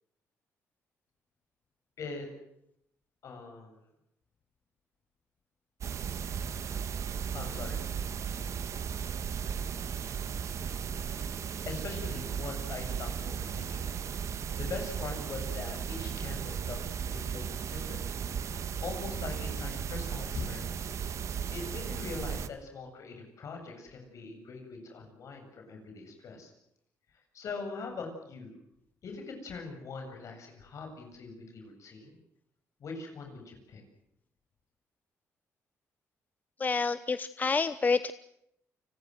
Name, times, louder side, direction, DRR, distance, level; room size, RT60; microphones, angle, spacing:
voice 1, 2.0-2.3 3.2-3.8 7.3-7.8 11.7-13.9 14.6-16.8 17.1-18.0 18.8-20.8 21.5-26.5 27.3-28.5 29.0-32.2 32.8-33.8, left 4 dB, 60° left, 4 dB, 7.8 m, -42 dB
sound 1, 5.8-22.5, right 7 dB, 60° right, 1.6 m, -36 dB
voice 2, 36.6-38.1, left 4 dB, 30° left, 13 dB, 0.9 m, -28 dB
30.0 x 20.5 x 8.0 m, 0.77 s
cardioid pair, 90°, 6 cm